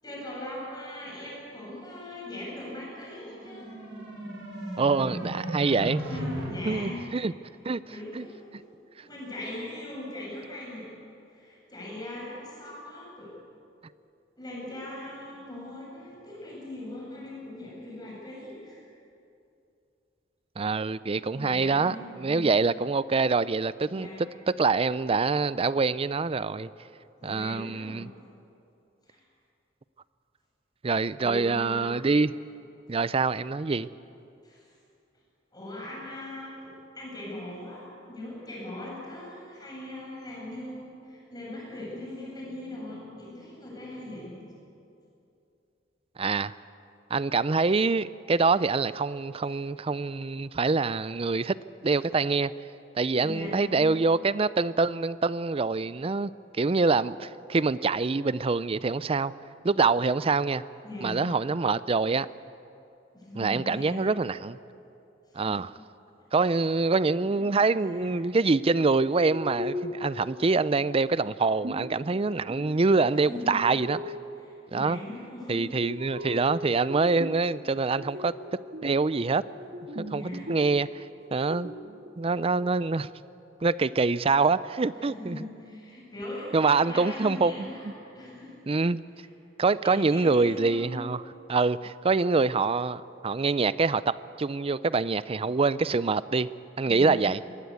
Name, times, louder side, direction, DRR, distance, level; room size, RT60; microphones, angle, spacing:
voice 1, 0.0-3.8 6.0-7.2 7.9-8.6 9.0-10.9 11.3-13.3 14.4-18.8 21.3-22.5 23.9-24.2 27.2-28.1 29.1-29.2 31.2-31.9 34.4-34.7 35.5-44.4 53.2-54.0 60.8-61.3 63.1-64.0 65.3-65.6 67.3-67.4 67.7-68.2 73.3-73.6 74.4-75.8 80.1-80.5 85.0-87.9 88.1-88.6 89.8-91.0 96.8-97.2, left 1 dB, 20° left, -4 dB, 7.7 m, -40 dB
sound 1, 3.1-6.4, right 1 dB, 75° right, 7.8 m, -36 dB
voice 2, 4.8-6.0 6.6-7.3 7.6-7.8 8.1-8.3 20.6-26.7 27.2-28.1 30.8-32.3 32.9-33.9 46.2-46.5 47.1-51.6 51.8-52.5 52.9-56.3 56.6-59.3 59.6-60.6 61.0-62.3 63.4-64.6 65.3-65.7 66.3-74.1 74.7-75.0 75.5-78.3 78.8-79.4 80.1-81.1 81.3-81.7 82.2-83.1 83.6-85.4 86.5-87.9 88.7-89.0 89.6-91.2 91.5-96.5 96.8-97.4, right 4 dB, 30° right, 17 dB, 0.5 m, -25 dB
sound 2, 69.2-70.2 71.6-72.8 73.3-74.3 75.8-77.5 78.0-79.1 79.4-80.9 81.2-82.7, left 1 dB, 55° right, 2.0 m, -38 dB
22.5 x 20.0 x 8.5 m, 2.6 s
head